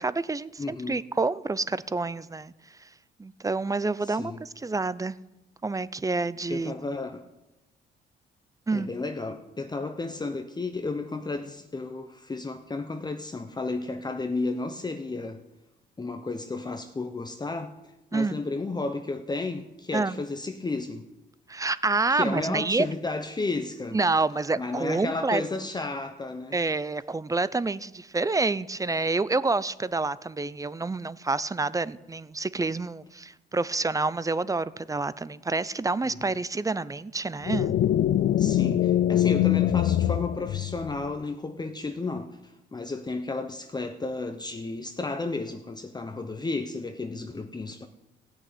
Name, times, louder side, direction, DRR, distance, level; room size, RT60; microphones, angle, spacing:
voice 1, 0.0-2.5 3.2-5.2 5.6-6.7 8.7-8.9 18.1-18.4 19.9-20.2 21.5-22.9 23.9-25.4 26.5-37.7, right 3 dB, 15° right, 0.5 m, -28 dB
voice 2, 0.6-1.0 4.0-4.4 6.5-7.2 8.7-15.4 16.0-17.7 18.1-21.1 22.1-24.0 24.6-26.6 36.0-36.3 38.4-47.9, left 3 dB, 20° left, 0.9 m, -33 dB
sound 1, 37.5-41.1, left 12 dB, 60° left, 0.5 m, -23 dB
16.0 x 6.4 x 9.2 m
cardioid pair, 90°, 20 cm